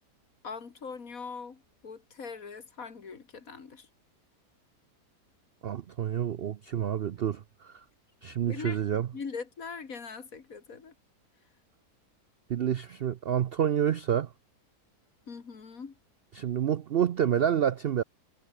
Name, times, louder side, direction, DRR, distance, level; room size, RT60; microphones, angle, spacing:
voice 1, 0.4-3.9 8.5-8.8 9.1-10.9 15.3-16.0, left 5 dB, 55° left, 2.4 m, -41 dB
voice 2, 5.6-7.8 8.2-9.1 12.5-14.3 16.4-18.0, right 9 dB, 85° right, 0.5 m, -28 dB
omnidirectional pair, 1.8 m